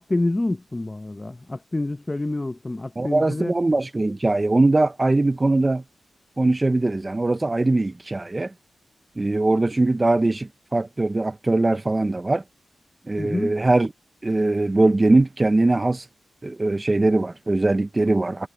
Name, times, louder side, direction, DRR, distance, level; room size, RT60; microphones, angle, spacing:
voice 1, 0.0-3.5 13.2-13.5, left 2 dB, 20° left, 0.7 m, -27 dB
voice 2, 3.0-5.8 6.4-8.5 9.2-12.4 13.1-13.9 14.2-16.1 16.4-18.5, right 2 dB, 20° right, 0.5 m, -21 dB
wide cardioid pair, 120°, 0 cm